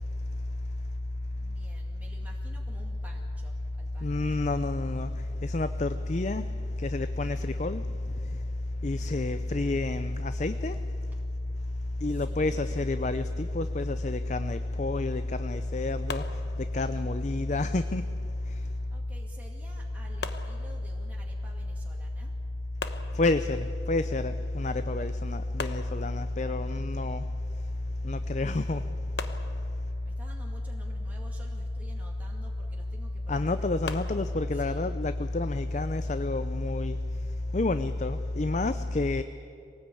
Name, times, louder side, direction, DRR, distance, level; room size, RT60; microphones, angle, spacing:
voice 1, 1.3-4.5 9.3-9.5 12.0-12.6 18.9-22.3 30.0-35.0, right 1 dB, 10° right, -3 dB, 2.2 m, -52 dB
voice 2, 4.0-5.1 5.4-6.5 6.8-7.8 8.8-10.8 12.0-16.2 16.7-18.0 23.1-27.3 28.0-28.8 33.3-37.0 37.5-39.2, left 2 dB, 40° left, 11 dB, 0.6 m, -29 dB
sound 1, 16.1-17.1 20.2-21.3 22.8-23.8 25.6-26.6 29.2-30.2 33.8-34.4, left 4 dB, 70° left, 1.1 m, -40 dB
23.5 x 18.5 x 8.5 m, 2.5 s
head